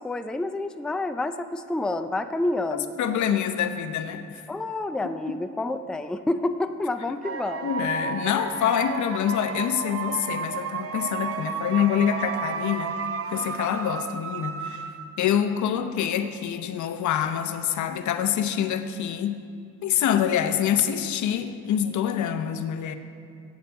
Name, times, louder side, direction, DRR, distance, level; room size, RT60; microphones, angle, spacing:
voice 1, 0.0-3.0 4.5-7.7, left 2 dB, 5° left, 9 dB, 0.4 m, -28 dB
voice 2, 2.7-4.4 5.0-5.1 7.6-12.9 13.3-14.8 15.2-19.5 19.8-23.0, left 9 dB, 70° left, 9 dB, 0.8 m, -26 dB
sound 1, 7.2-15.3, right 6 dB, 50° right, 0.7 m, -32 dB
8.4 x 8.1 x 7.7 m, 2.3 s
cardioid pair, 90°, 30 cm